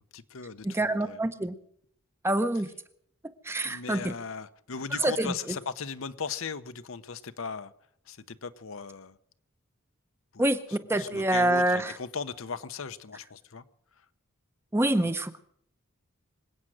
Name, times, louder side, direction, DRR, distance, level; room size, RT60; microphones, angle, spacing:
voice 1, 0.1-1.2 3.7-7.7 8.1-9.2 10.3-13.6 15.0-15.1, left 5 dB, 75° left, 0.9 m, -38 dB
voice 2, 0.6-1.5 2.2-2.7 3.5-4.1 5.0-5.3 10.4-11.9 14.7-15.4, right 1 dB, 10° right, 0.7 m, -26 dB
25.5 x 8.9 x 6.4 m
head